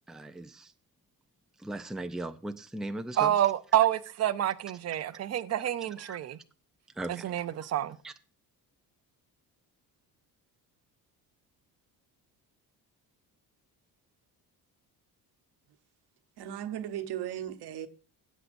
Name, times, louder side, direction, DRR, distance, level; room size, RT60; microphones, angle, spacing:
voice 1, 0.1-0.7 1.6-3.3 6.0-6.2 7.0-7.3 8.0-8.1, right 2 dB, ahead, 0.5 m, -38 dB
voice 2, 3.2-6.4 7.1-8.0, right 12 dB, 40° right, 0.6 m, -28 dB
voice 3, 16.4-17.9, right 11 dB, 85° right, 1.0 m, -36 dB
16.0 x 8.2 x 2.6 m
cardioid pair, 135°, 38 cm